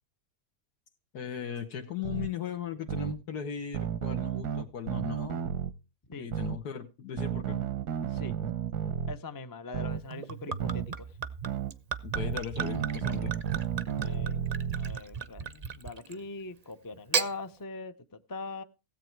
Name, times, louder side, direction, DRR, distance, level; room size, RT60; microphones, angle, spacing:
voice 1, 1.1-5.5 6.2-7.6 12.0-13.3, left 8 dB, 80° left, 4 dB, 1.8 m, -38 dB
sound 1, 2.0-2.3 2.9-3.1 3.7-5.7 6.3-6.6 7.2-9.1 9.7-10.0 10.6-10.9 11.5-11.7 12.1-14.9, right 9 dB, 85° right, 1.4 m, -32 dB
voice 2, 9.1-11.1 13.9-14.5 14.8-17.9 18.3-18.6, left 3 dB, 25° left, 10 dB, 0.4 m, -41 dB
Gurgling / Chink clink / Liquid, 10.1-16.3 16.9-17.3, right 6 dB, 40° right, 0.5 m, -35 dB
16.5 x 8.0 x 4.6 m, 0.30 s
omnidirectional pair, 1.6 m